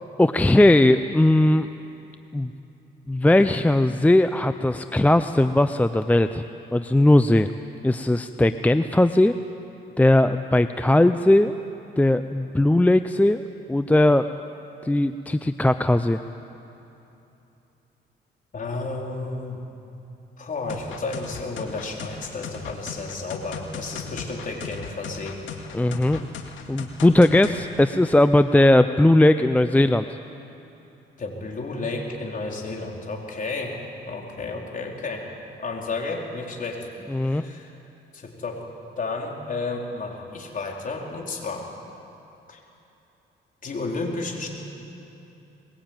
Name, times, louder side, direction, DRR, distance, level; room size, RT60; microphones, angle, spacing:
voice 1, 0.2-1.7 2.3-2.5 3.1-6.4 6.7-7.5 7.8-9.4 10.0-11.5 12.0-13.4 13.7-14.2 14.8-16.2 25.7-26.2 26.7-30.1 37.1-37.4, left 1 dB, 5° left, 10 dB, 0.6 m, -18 dB
voice 2, 18.5-19.6 20.4-25.4 25.7-25.9 31.2-33.8 34.1-35.3 35.6-36.9 37.1-37.7 38.1-38.6 39.0-41.7 42.5-42.6 43.6-44.5, left 3 dB, 45° left, 0 dB, 4.4 m, -32 dB
sound 1, 20.7-27.6, left 5 dB, 80° left, 2.3 m, -37 dB
22.5 x 21.5 x 9.1 m, 3.0 s
cardioid pair, 90°, 20 cm